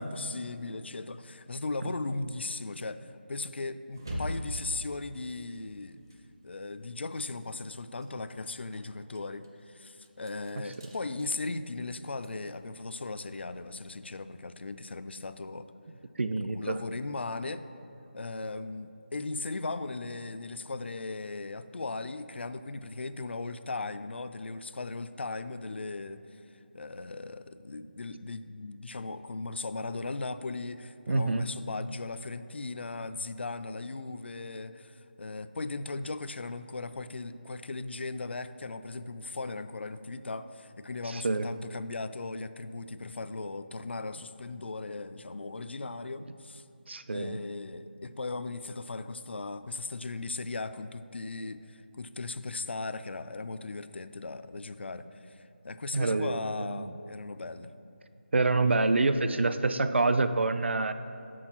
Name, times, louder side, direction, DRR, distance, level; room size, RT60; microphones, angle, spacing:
voice 1, 0.0-6.0 6.4-15.7 16.4-17.6 18.1-26.4 26.7-46.6 47.1-57.7, left 3 dB, 70° left, 12 dB, 0.3 m, -38 dB
sound 1, 3.9-6.9 7.2-13.6, equal, 20° right, 0.4 m, -44 dB
voice 2, 16.2-16.8 31.1-31.4 41.0-41.5 46.9-47.4 55.9-56.9 58.3-60.9, right 3 dB, 80° right, 10 dB, 0.4 m, -27 dB
6.2 x 4.3 x 5.7 m, 2.6 s
figure-of-eight pair, 180°, 6 cm